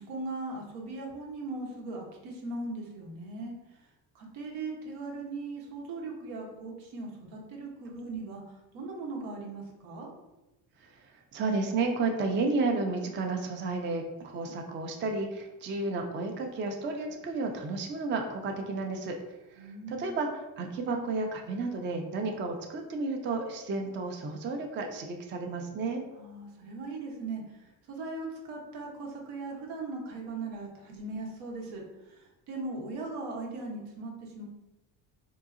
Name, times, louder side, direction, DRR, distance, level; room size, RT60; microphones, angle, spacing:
voice 1, 0.0-3.5 4.1-8.4 8.7-10.1 19.6-20.2 26.2-27.4 27.9-31.8 32.5-34.4, right 3 dB, 85° right, -1 dB, 1.0 m, -39 dB
voice 2, 10.8-19.2 19.5-26.0, right 3 dB, 30° right, 3 dB, 0.4 m, -32 dB
3.8 x 2.7 x 2.5 m, 1.0 s
cardioid pair, 120°, 39 cm